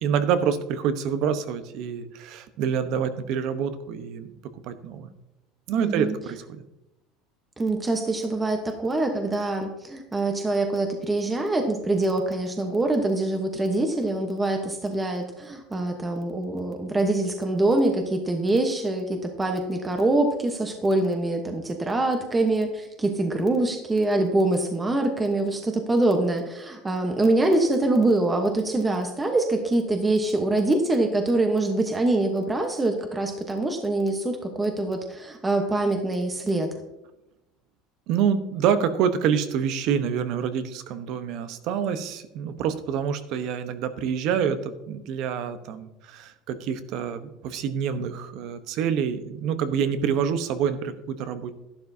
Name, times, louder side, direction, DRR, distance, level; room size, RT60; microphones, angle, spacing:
voice 1, 0.0-4.3 4.6-5.1 5.7-6.4 38.1-51.5, right 7 dB, 55° right, 11 dB, 0.9 m, -27 dB
voice 2, 5.8-6.2 7.6-36.7, right 2 dB, 15° right, 4 dB, 1.0 m, -24 dB
12.0 x 11.5 x 2.7 m, 0.92 s
cardioid pair, 145°, 0 cm